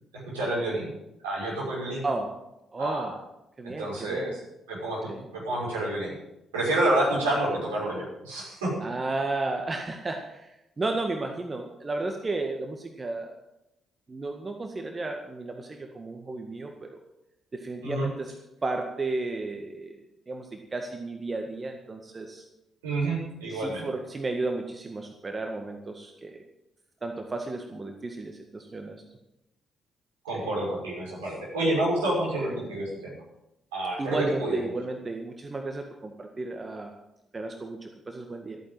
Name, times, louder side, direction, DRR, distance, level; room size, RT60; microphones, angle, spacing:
voice 1, 0.3-0.9 1.2-2.0 2.8-3.1 3.6-4.4 4.7-6.1 6.5-8.7 17.8-18.1 22.8-23.8 30.2-33.2 33.7-34.6, right 1 dB, 80° right, -5 dB, 6.1 m, -28 dB
voice 2, 2.0-2.4 2.7-3.2 3.6-4.4 5.1-5.3 8.8-13.3 14.1-17.0 17.5-18.3 18.6-20.0 20.3-22.4 23.5-26.4 27.0-29.0 30.3-30.5 34.0-36.9 37.3-38.6, right 2 dB, 30° right, 4 dB, 1.8 m, -33 dB
14.5 x 9.0 x 7.7 m, 0.89 s
figure-of-eight pair, 40°, 0 cm